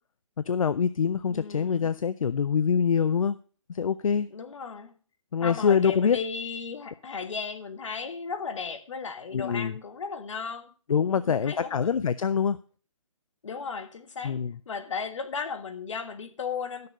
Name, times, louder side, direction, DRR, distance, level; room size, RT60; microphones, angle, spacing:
voice 1, 0.4-3.4 3.7-4.3 5.3-6.2 9.3-9.8 10.9-12.6 14.2-14.6, left 7 dB, 80° left, 0.5 m, -25 dB
voice 2, 1.3-1.9 4.3-4.9 5.4-10.7 11.1-11.9 13.4-14.4 14.6-16.9, left 5 dB, 65° left, 1.5 m, -35 dB
12.0 x 6.7 x 5.4 m
hypercardioid pair, 155°, 17 cm